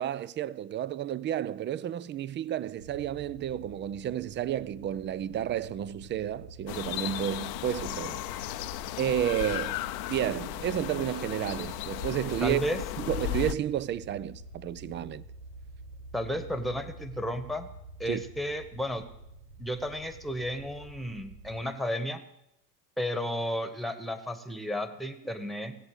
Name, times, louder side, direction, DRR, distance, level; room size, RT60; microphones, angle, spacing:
voice 1, 0.0-8.2 9.0-9.8 10.1-12.6 13.0-15.2 18.1-18.2, right 11 dB, 25° right, 0.5 m, -31 dB
sound 1, 2.8-21.6, right 2 dB, 85° right, 1.7 m, -48 dB
sound 2, 6.7-13.5, left 15 dB, 55° left, 0.7 m, -35 dB
voice 2, 12.4-12.8 16.1-17.7 18.0-19.0 19.6-22.2 23.0-25.8, equal, ahead, 1.3 m, -33 dB
17.5 x 8.1 x 8.1 m
hypercardioid pair, 100°, 45 cm